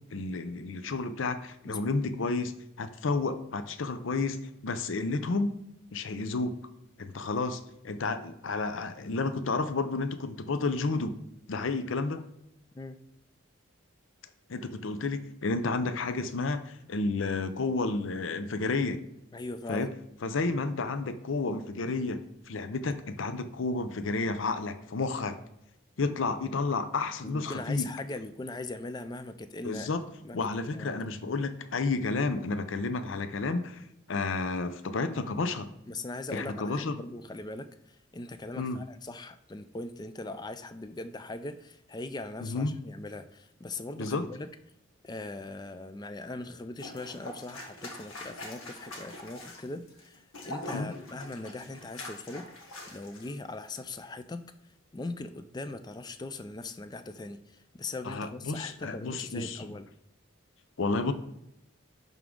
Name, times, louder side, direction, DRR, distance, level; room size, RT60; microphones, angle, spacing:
voice 1, 0.1-5.5 5.9-6.6 7.0-11.2 11.5-12.2 14.5-19.0 19.7-19.9 20.2-25.4 26.0-27.9 29.6-30.1 30.3-33.8 34.1-35.7 36.3-37.0 38.6-38.8 42.4-42.7 44.0-44.2 50.7-50.9 58.0-59.7 60.8-61.1, left 3 dB, 65° left, 10 dB, 0.6 m, -31 dB
voice 2, 1.6-2.0 12.8-13.0 19.3-19.9 27.2-29.9 30.2-30.4 30.6-31.0 35.9-44.5 45.0-52.5 52.9-54.4 54.9-59.9, left 2 dB, 20° left, 10 dB, 0.4 m, -40 dB
sound 1, 46.8-53.3 53.6-53.8, left 1 dB, 80° left, 1.4 m, -43 dB
11.0 x 3.6 x 3.7 m, 0.83 s
head